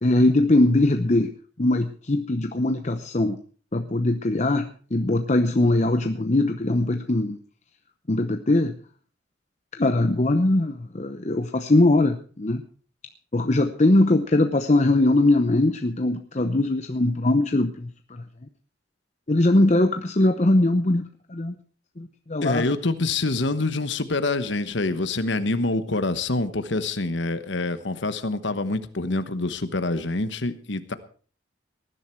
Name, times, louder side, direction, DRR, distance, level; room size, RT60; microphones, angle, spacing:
voice 1, 0.0-3.4 3.7-7.4 8.1-8.8 9.7-12.6 13.3-18.5 19.3-21.6 22.0-22.7, left 2 dB, 35° left, 7 dB, 0.8 m, -21 dB
voice 2, 22.4-30.9, left 2 dB, 60° left, 12 dB, 1.2 m, -26 dB
19.5 x 11.0 x 4.5 m, 0.42 s
head